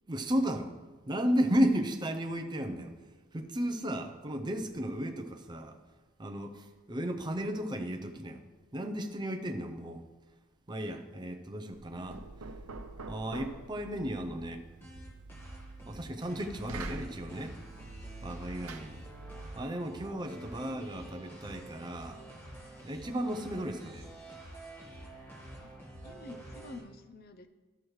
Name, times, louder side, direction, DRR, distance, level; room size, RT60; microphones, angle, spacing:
voice 1, 0.1-0.8 1.1-2.9 3.3-5.8 6.2-8.4 8.7-10.0 10.7-12.2 13.1-14.6 15.9-17.6 18.2-19.0 19.5-22.2 22.8-24.1, equal, 20° right, 0.5 m, -34 dB
Knock, 11.7-19.6, right 3 dB, 80° right, 0.7 m, -46 dB
sound 1, 14.8-26.8, right 1 dB, 10° left, 1.5 m, -49 dB
voice 2, 26.0-27.5, left 2 dB, 45° left, 0.6 m, -48 dB
13.5 x 6.2 x 3.2 m
head